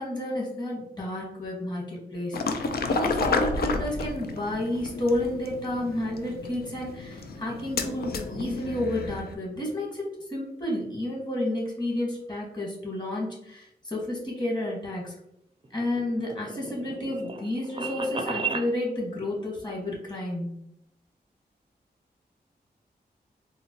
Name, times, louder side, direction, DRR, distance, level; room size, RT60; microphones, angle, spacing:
voice 1, 0.0-10.0 10.3-15.1 15.7-20.5, left 1 dB, 25° left, -3 dB, 1.3 m, -31 dB
sound 1, 2.3-9.3, left 4 dB, 65° left, 0.4 m, -31 dB
sound 2, 15.6-18.7, right 4 dB, 30° right, 0.5 m, -33 dB
3.8 x 2.1 x 2.8 m, 0.78 s
cardioid pair, 65°, 17 cm